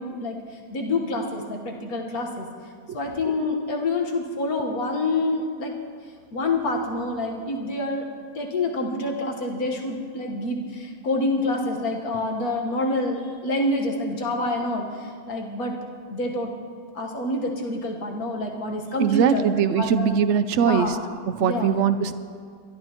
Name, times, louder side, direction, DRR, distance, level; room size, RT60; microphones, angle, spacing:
voice 1, 0.0-2.5 2.9-5.7 6.3-8.1 8.4-15.7 16.1-16.5 17.0-20.1 20.6-21.0 21.4-21.7, left 2 dB, 65° left, 1 dB, 1.8 m, -27 dB
voice 2, 19.0-21.0 21.3-22.1, right 8 dB, 65° right, 12 dB, 0.7 m, -21 dB
23.0 x 12.0 x 3.0 m, 2.1 s
omnidirectional pair, 1.7 m